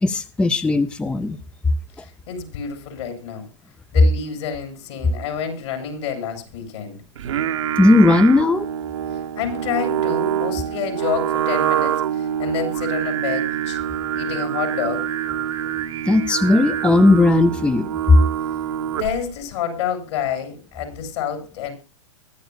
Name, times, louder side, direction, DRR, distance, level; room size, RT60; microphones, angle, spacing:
voice 1, 0.0-1.4 2.0-2.1 7.8-8.7 16.1-18.2, left 2 dB, 5° left, 12 dB, 0.5 m, -16 dB
voice 2, 2.0-3.4 3.9-7.0 9.4-13.8 14.1-15.1 18.9-21.7, left 7 dB, 70° left, 4 dB, 7.7 m, -28 dB
Singing, 7.2-19.3, right 10 dB, 80° right, 1.2 m, -25 dB
23.5 x 11.5 x 2.4 m, 0.30 s
hypercardioid pair, 130°, 16 cm